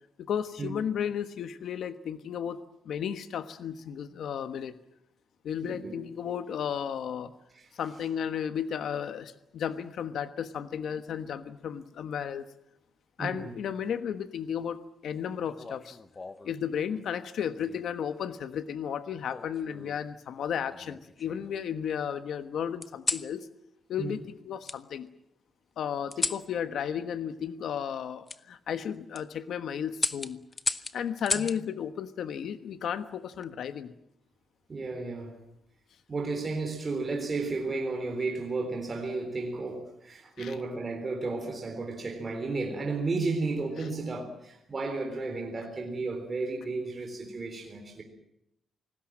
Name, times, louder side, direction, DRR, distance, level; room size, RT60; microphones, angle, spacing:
voice 1, 0.2-2.6 2.8-4.7 5.4-7.3 7.8-12.4 13.2-16.0 16.4-23.5 23.9-24.2 24.4-25.1 25.8-30.4 30.9-33.9 40.4-40.6, left 8 dB, 65° left, 1.2 m, -34 dB
voice 2, 5.6-6.0 7.5-7.7 13.2-13.5 24.0-24.2 31.3-31.4 34.7-35.4 36.1-48.0, right 3 dB, 25° right, 3.9 m, -33 dB
sound 1, 15.5-16.6 17.6-18.0 19.3-20.1 20.7-21.6 22.8-23.3 24.7-24.8 26.1-26.5 28.3-28.4 28.9-29.2 30.0-31.6 33.1-33.5, left 3 dB, 20° left, 0.8 m, -34 dB
28.0 x 19.5 x 7.5 m
wide cardioid pair, 175°, 0 cm